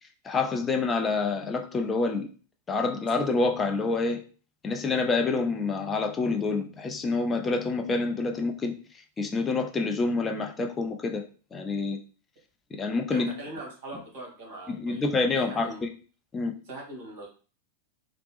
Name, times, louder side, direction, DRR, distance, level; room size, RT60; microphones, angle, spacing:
voice 1, 0.2-2.3 2.7-4.2 4.6-8.7 9.2-11.2 11.5-12.0 12.7-13.3 14.7-15.9 16.3-16.5, left 3 dB, 20° left, 3 dB, 0.4 m, -27 dB
voice 2, 13.1-15.8 16.7-17.3, right 1 dB, 50° right, -1 dB, 1.3 m, -41 dB
2.9 x 2.0 x 3.0 m, 0.38 s
figure-of-eight pair, 90°, 0 cm